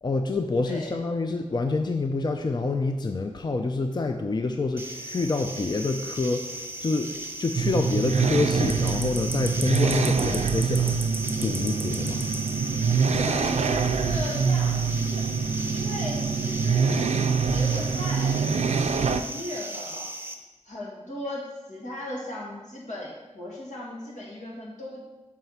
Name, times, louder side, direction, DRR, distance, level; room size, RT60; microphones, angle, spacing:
voice 1, 0.0-11.0 11.4-12.3, left 3 dB, 35° left, 5 dB, 0.4 m, -27 dB
voice 2, 0.6-0.9 13.1-15.3 15.7-17.2 17.4-20.1 20.6-25.0, left 1 dB, 85° left, -3 dB, 1.9 m, -37 dB
sound 1, 4.8-20.3, right 1 dB, 20° right, 0.8 m, -36 dB
sound 2, 7.5-19.2, right 5 dB, 65° right, 0.4 m, -25 dB
5.7 x 4.6 x 5.5 m, 1.1 s
wide cardioid pair, 70°, 12 cm